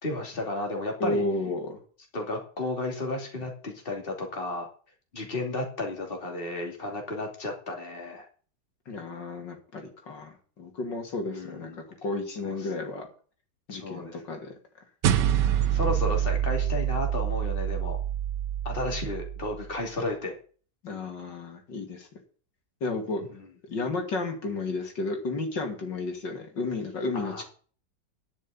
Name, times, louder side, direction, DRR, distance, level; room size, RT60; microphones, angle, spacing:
voice 1, 0.0-1.2 2.1-4.7 5.1-8.3 11.3-11.8 12.4-12.7 13.7-14.2 15.7-18.0 18.6-20.4 23.3-23.5 27.1-27.4, left 2 dB, 30° left, 2 dB, 2.8 m, -33 dB
voice 2, 1.0-1.8 8.9-11.7 12.0-13.1 13.7-14.5 20.8-22.1 22.8-23.2 23.7-27.4, left 2 dB, 85° left, 3 dB, 3.2 m, -32 dB
sound 1, 15.0-19.7, right 10 dB, 80° right, 1.5 m, -26 dB
11.0 x 6.4 x 8.6 m, 0.42 s
omnidirectional pair, 1.9 m